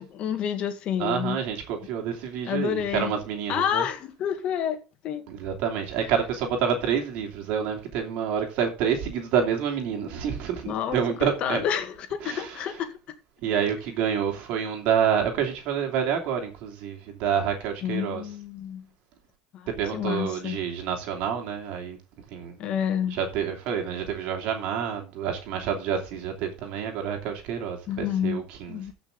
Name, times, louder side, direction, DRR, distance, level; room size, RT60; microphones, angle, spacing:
voice 1, 0.0-1.4 2.4-3.2 3.5-4.8 5.0-5.3 6.0-6.1 10.6-12.9 17.8-18.8 19.5-20.6 22.6-23.2 27.9-28.4 28.7-28.9, left 9 dB, 50° left, 2.2 m, -29 dB
voice 2, 1.0-3.9 5.3-11.6 12.2-12.7 13.4-18.2 19.8-22.0 22.3-22.6 23.1-28.8, right 7 dB, 65° right, 3.0 m, -28 dB
14.5 x 6.1 x 3.9 m
supercardioid pair, 125°, 2 cm